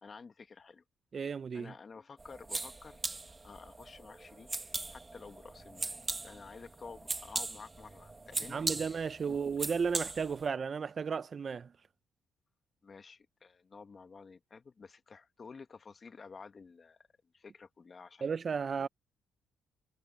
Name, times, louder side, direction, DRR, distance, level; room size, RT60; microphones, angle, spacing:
voice 1, 0.0-0.8 1.5-3.0 3.4-4.5 4.9-5.9 6.2-9.4 12.8-17.0 17.3-18.3 18.7-18.9, left 5 dB, 35° left, 1.7 m, -51 dB
voice 2, 1.1-1.7 8.5-11.7 18.2-18.9, right 6 dB, 45° right, 0.6 m, -34 dB
sound 1, 2.2-10.5, right 3 dB, 20° right, 1.8 m, -40 dB
cardioid pair, 90°, 0 cm